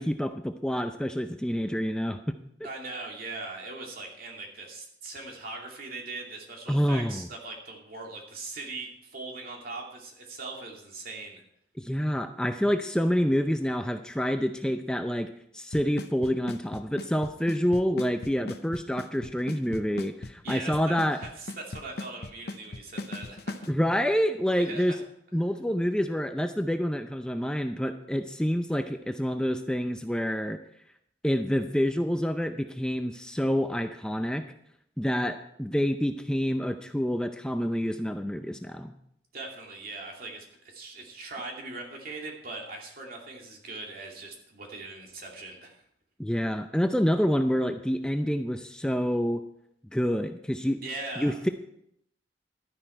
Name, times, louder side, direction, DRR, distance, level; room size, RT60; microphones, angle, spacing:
voice 1, 0.0-2.4 6.7-7.3 11.8-15.3 15.5-21.2 23.7-25.0 25.3-30.6 31.2-34.5 35.0-39.0 46.2-49.4 49.9-50.8 51.2-51.5, equal, 5° left, 7 dB, 0.5 m, -27 dB
voice 2, 2.6-11.4 20.4-23.7 24.5-25.0 39.3-45.8 50.8-51.4, right 3 dB, 55° right, 0 dB, 2.6 m, -40 dB
Drum kit / Snare drum / Bass drum, 15.7-23.7, left 2 dB, 65° left, 0.8 m, -37 dB
12.0 x 10.5 x 4.5 m, 0.73 s
head